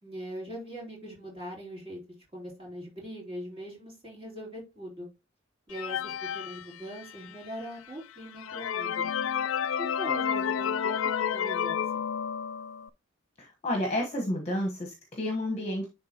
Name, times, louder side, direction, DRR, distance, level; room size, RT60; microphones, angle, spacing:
voice 1, 0.0-2.0 2.3-5.1 5.7-9.1 9.8-12.0, right 1 dB, 30° right, -4 dB, 3.5 m, -41 dB
sound 1, 5.7-7.3 7.9-8.0 8.4-12.9, left 8 dB, 85° left, 0.4 m, -30 dB
voice 2, 13.4-15.9, left 1 dB, 35° left, 1 dB, 1.1 m, -31 dB
10.5 x 3.7 x 2.8 m, 0.26 s
head